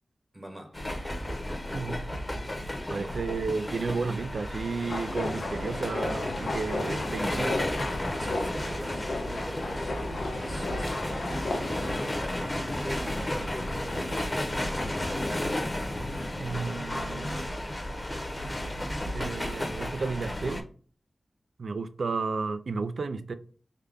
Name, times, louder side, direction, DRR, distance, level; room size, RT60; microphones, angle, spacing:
voice 1, 0.3-0.9 2.9-3.2 8.2-15.4, equal, 20° right, 0.9 m, -43 dB
sound 1, 0.7-20.6, left 1 dB, 20° left, 0.7 m, -33 dB
voice 2, 1.7-2.0 2.9-7.6 16.4-17.5 19.1-20.7 21.6-23.3, right 4 dB, 70° right, 0.3 m, -32 dB
sound 2, 4.8-12.0, left 2 dB, 80° left, 0.8 m, -35 dB
3.7 x 2.2 x 3.3 m
wide cardioid pair, 100°, 0 cm